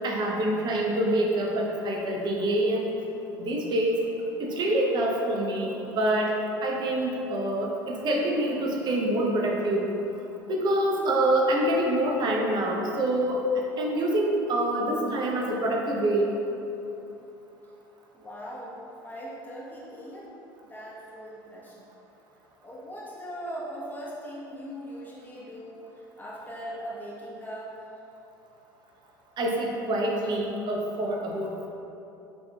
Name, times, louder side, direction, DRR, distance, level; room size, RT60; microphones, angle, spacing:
voice 1, 0.0-2.9 3.4-4.0 4.4-6.3 6.6-9.9 10.5-13.4 13.8-16.3 29.4-31.7, right 1 dB, 40° right, -1 dB, 0.8 m, -26 dB
voice 2, 18.1-20.3 20.6-21.8 22.6-27.7, equal, 15° left, -6 dB, 1.1 m, -40 dB
5.3 x 3.0 x 2.3 m, 2.9 s
hypercardioid pair, 75°, 11 cm